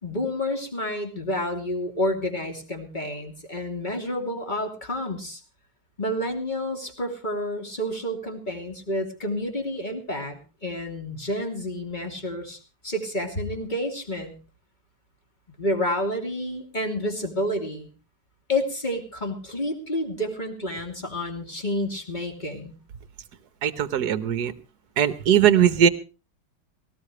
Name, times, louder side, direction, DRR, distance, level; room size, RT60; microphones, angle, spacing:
voice 1, 0.0-5.4 6.0-12.6 12.8-14.3 15.6-17.9 18.5-22.7, left 1 dB, 20° left, 4 dB, 3.0 m, -29 dB
voice 2, 23.6-24.5 25.0-25.9, right 9 dB, 55° right, 13 dB, 1.5 m, -19 dB
18.5 x 17.5 x 3.2 m, 0.33 s
omnidirectional pair, 2.3 m